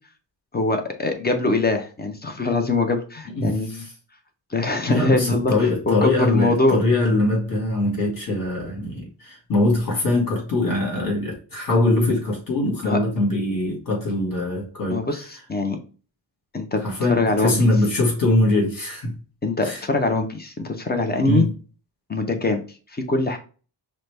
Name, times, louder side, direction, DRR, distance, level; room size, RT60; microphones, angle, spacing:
voice 1, 0.5-3.8 4.5-5.5 5.9-6.8 12.8-13.0 14.9-15.2 15.5-15.8 16.5-16.8 17.1-17.6 19.4-21.5 22.1-22.6 22.9-23.4, left 2 dB, 25° left, 5 dB, 0.4 m, -22 dB
voice 2, 3.3-3.9 4.9-15.3 16.8-19.2 19.6-19.8 21.3-21.5, left 2 dB, 50° left, -1 dB, 1.8 m, -22 dB
5.5 x 2.0 x 3.3 m, 0.37 s
wide cardioid pair, 170°, 43 cm